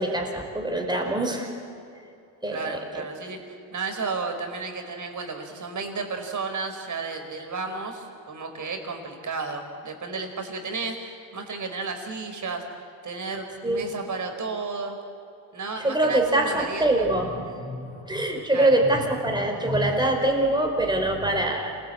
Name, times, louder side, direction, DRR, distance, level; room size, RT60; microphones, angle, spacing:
voice 1, 0.0-1.5 2.4-3.0 13.6-13.9 15.8-21.8, right 1 dB, 10° right, 2 dB, 4.8 m, -24 dB
voice 2, 2.5-12.6 13.0-15.0 15.5-17.1 18.5-18.8, right 4 dB, 40° right, 4 dB, 4.9 m, -33 dB
27.0 x 20.0 x 8.7 m, 2.7 s
cardioid pair, 100°, 47 cm